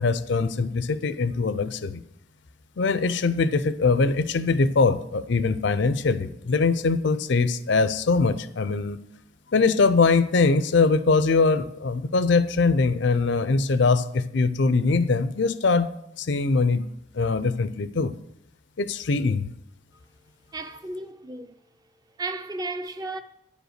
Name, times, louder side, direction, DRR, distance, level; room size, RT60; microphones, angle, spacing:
voice 1, 0.0-2.0 2.8-9.0 9.5-15.9 16.2-16.8 17.1-18.1 18.8-19.5, left 4 dB, 55° left, 0.5 m, -22 dB
voice 2, 20.5-21.5 22.2-23.2, right 2 dB, 20° right, 0.4 m, -33 dB
9.7 x 5.1 x 6.5 m
head